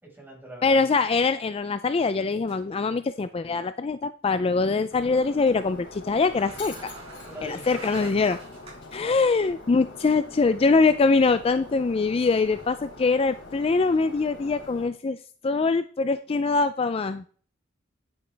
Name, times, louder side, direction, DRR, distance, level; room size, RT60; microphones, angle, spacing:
voice 1, 0.0-0.8 7.3-8.1 9.0-9.2, right 1 dB, 10° right, -2 dB, 5.1 m, -42 dB
voice 2, 0.6-6.9 7.4-8.4 8.9-15.2 15.4-17.3, left 4 dB, 30° left, 12 dB, 0.4 m, -23 dB
sound 1, 2.5-2.9 3.2-3.3 5.8-9.0 9.6-9.7 12.1-12.7, right 3 dB, 35° right, 5.1 m, -46 dB
Shatter, 4.9-14.9, left 2 dB, 65° left, 3.2 m, -44 dB
9.9 x 9.5 x 3.4 m, 0.44 s
head